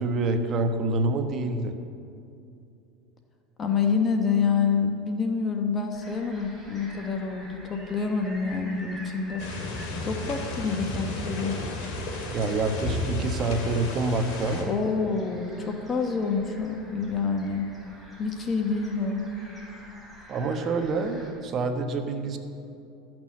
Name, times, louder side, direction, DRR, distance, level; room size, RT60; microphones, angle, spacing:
voice 1, 0.0-1.7 12.3-14.7 20.3-22.4, right 3 dB, 40° right, 6 dB, 1.1 m, -27 dB
voice 2, 3.6-9.5 10.0-11.6 14.6-17.7 18.2-19.2, left 5 dB, 30° left, 4 dB, 1.0 m, -27 dB
sound 1, 5.9-21.3, equal, ahead, 3.4 m, -47 dB
sound 2, 9.4-14.6, left 1 dB, 60° left, 2.4 m, -33 dB
13.0 x 6.2 x 7.5 m, 2.5 s
supercardioid pair, 115°, 0 cm